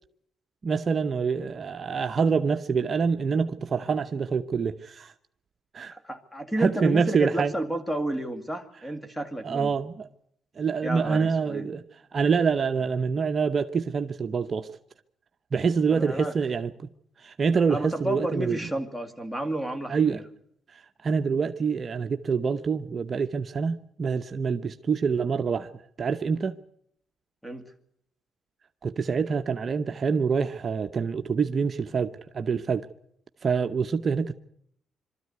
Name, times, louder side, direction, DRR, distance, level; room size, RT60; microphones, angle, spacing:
voice 1, 0.6-5.1 5.7-6.0 6.6-7.5 9.4-10.1 10.6-11.8 12.1-14.7 15.5-16.9 17.2-18.7 19.9-20.2 20.7-25.7 26.0-26.6 28.8-32.9 33.4-34.3, right 5 dB, 40° right, 0.8 m, -26 dB
voice 2, 5.9-9.7 10.8-11.7 15.9-16.3 17.7-20.2 27.4-27.7, right 1 dB, 5° left, 2.3 m, -31 dB
23.5 x 13.5 x 9.5 m
cardioid pair, 90°, 0 cm